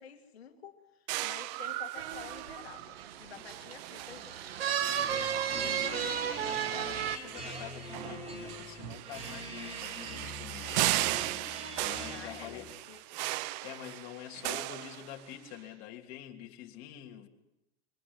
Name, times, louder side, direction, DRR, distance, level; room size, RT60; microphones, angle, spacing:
voice 1, 0.0-4.4 12.1-13.0, left 8 dB, 80° left, 2.4 m, -50 dB
sound 1, 1.1-15.5, right 18 dB, 45° right, 0.7 m, -37 dB
sound 2, 2.0-7.2, right 9 dB, 70° right, 1.9 m, -34 dB
sound 3, 4.8-12.7, equal, 20° right, 6.6 m, -44 dB
voice 2, 5.1-10.9 11.8-12.7 13.6-17.3, left 11 dB, 45° left, 3.0 m, -46 dB
23.5 x 19.0 x 8.0 m
hypercardioid pair, 120°, 31 cm